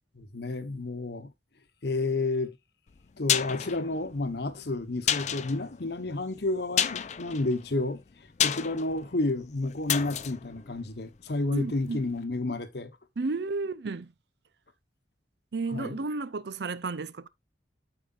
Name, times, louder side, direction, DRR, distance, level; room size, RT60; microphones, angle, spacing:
voice 1, 0.1-1.3 1.8-2.5 3.2-8.0 8.4-12.9 15.7-16.0, left 2 dB, 60° left, 1.0 m, -30 dB
sound 1, 2.9-11.7 12.0-12.1, left 9 dB, 40° left, 0.4 m, -32 dB
voice 2, 11.5-12.0 13.2-14.1 15.5-17.3, right 3 dB, 60° right, 0.5 m, -32 dB
12.5 x 4.9 x 2.4 m
head